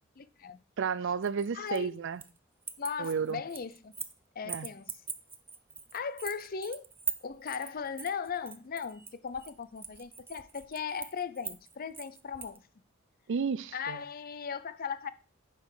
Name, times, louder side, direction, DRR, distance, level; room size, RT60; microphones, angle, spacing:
voice 1, 0.2-0.6 1.5-2.0 2.8-3.9 4.4-4.9 5.9-6.9 7.2-12.6 13.7-15.1, left 6 dB, 45° left, 0.5 m, -38 dB
voice 2, 0.8-2.2 3.0-3.4 4.5-4.7 13.3-14.0, right 6 dB, 60° right, 0.4 m, -32 dB
sound 1, 1.2-2.4 2.6-4.2 4.5-12.6, right 5 dB, 10° right, 0.5 m, -41 dB
9.4 x 5.8 x 4.8 m
head